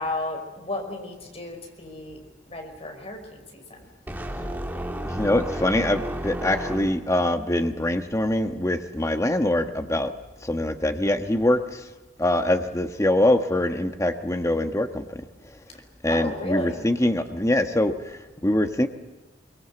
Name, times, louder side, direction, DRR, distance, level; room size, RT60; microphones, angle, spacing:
voice 1, 0.0-2.2 2.5-3.8 16.1-16.8, left 2 dB, 35° left, 4 dB, 5.3 m, -33 dB
sound 1, 4.1-7.3, right 1 dB, 10° right, 1.8 m, -32 dB
voice 2, 5.0-10.1 10.4-11.8 12.2-15.2 16.0-18.9, left 1 dB, 15° left, 6 dB, 1.2 m, -23 dB
24.0 x 22.5 x 7.8 m, 1.2 s
head